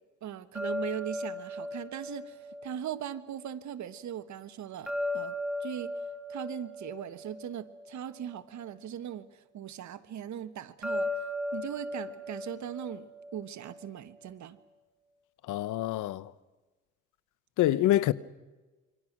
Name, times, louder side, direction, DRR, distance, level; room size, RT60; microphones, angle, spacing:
voice 1, 0.2-5.9 6.3-14.6, right 10 dB, 70° right, 1.5 m, -39 dB
sound 1, 0.5-3.6 4.9-8.4 10.8-13.9, left 1 dB, ahead, 2.9 m, -37 dB
voice 2, 15.5-16.3 17.6-18.1, left 14 dB, 85° left, 0.9 m, -26 dB
27.5 x 24.0 x 6.1 m
cardioid pair, 90°, 30 cm